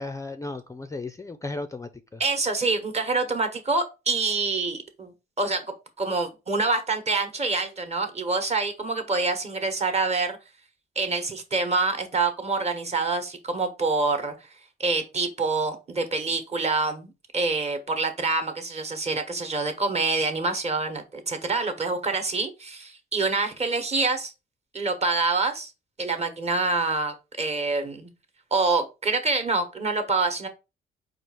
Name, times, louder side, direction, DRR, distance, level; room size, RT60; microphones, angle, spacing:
voice 1, 0.0-2.2, left 2 dB, 15° left, 0.4 m, -35 dB
voice 2, 2.2-5.6 6.0-10.4 11.0-14.3 14.8-24.3 24.7-25.7 26.0-28.1 28.5-30.5, right 3 dB, 35° right, 1.1 m, -26 dB
4.5 x 2.4 x 4.8 m
cardioid pair, 90°, 20 cm